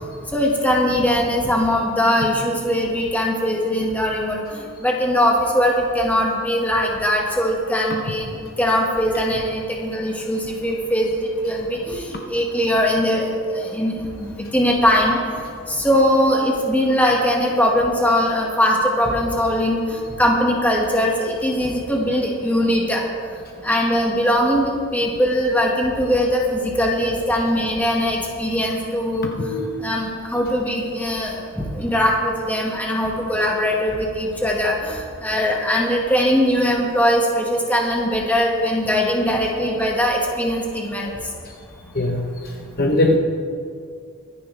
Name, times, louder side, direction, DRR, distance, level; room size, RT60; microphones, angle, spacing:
voice 1, 0.3-8.3 8.6-11.1 11.4-15.2 15.7-23.0 23.6-41.1, equal, 5° left, -2 dB, 1.8 m, -21 dB
voice 2, 42.8-43.2, left 1 dB, 45° left, 1 dB, 1.0 m, -18 dB
23.5 x 10.0 x 3.4 m, 2.2 s
head